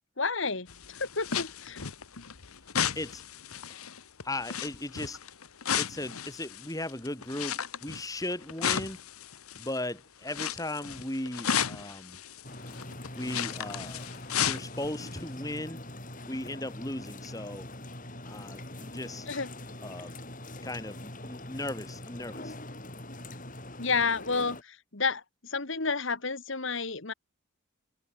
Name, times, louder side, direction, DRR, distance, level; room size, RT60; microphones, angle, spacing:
voice 1, 0.2-1.8 19.3-19.5 23.8-25.2 25.5-27.1, left 4 dB, 60° left, 1.9 m, -30 dB
sound 1, 0.7-9.8 10.2-15.2 15.5-15.6, left 8 dB, 90° left, 1.4 m, -34 dB
voice 2, 4.2-5.2 5.8-9.0 9.5-12.2 13.1-14.1 14.4-15.8 16.2-17.7 18.3-19.3 19.8-20.2 20.6-22.6, left 1 dB, 15° left, 3.5 m, -37 dB
sound 2, 12.4-24.6, left 1 dB, 40° left, 5.4 m, -43 dB
head